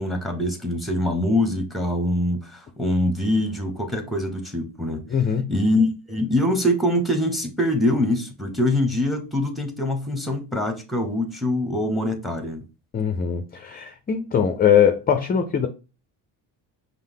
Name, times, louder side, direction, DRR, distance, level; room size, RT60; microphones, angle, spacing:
voice 1, 0.0-5.1 5.5-12.6, left 1 dB, ahead, 0.8 m, -24 dB
voice 2, 5.1-5.5 12.9-15.7, left 8 dB, 20° left, 0.4 m, -21 dB
5.4 x 2.0 x 3.5 m
cardioid pair, 110°, 45 cm